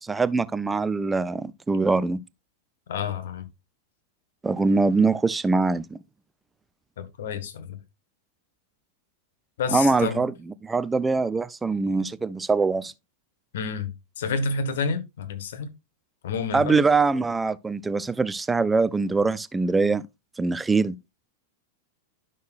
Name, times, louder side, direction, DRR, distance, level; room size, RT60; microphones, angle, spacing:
voice 1, 0.0-2.2 4.4-6.0 9.7-10.3 10.6-12.9 16.5-20.0 20.4-20.9, right 3 dB, 10° right, 0.4 m, -23 dB
voice 2, 2.9-3.5 7.0-7.8 9.6-10.3 13.5-15.7 16.2-16.8, left 4 dB, 60° left, 1.3 m, -29 dB
11.0 x 6.3 x 2.4 m
figure-of-eight pair, 95°, 0 cm